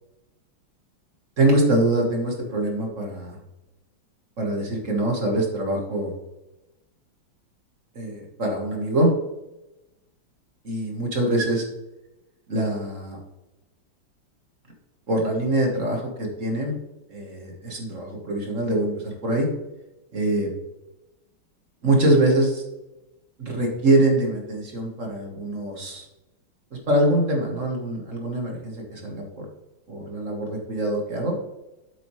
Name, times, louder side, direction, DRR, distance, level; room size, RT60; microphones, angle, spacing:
voice 1, 1.4-3.4 4.4-6.1 7.9-9.1 10.6-11.6 12.5-13.2 15.1-16.7 17.1-19.5 20.1-20.5 21.8-22.6 23.4-26.0 26.7-29.4 29.9-31.3, right 1 dB, 40° right, 0 dB, 1.6 m, -24 dB
7.8 x 7.7 x 3.2 m, 0.97 s
omnidirectional pair, 2.3 m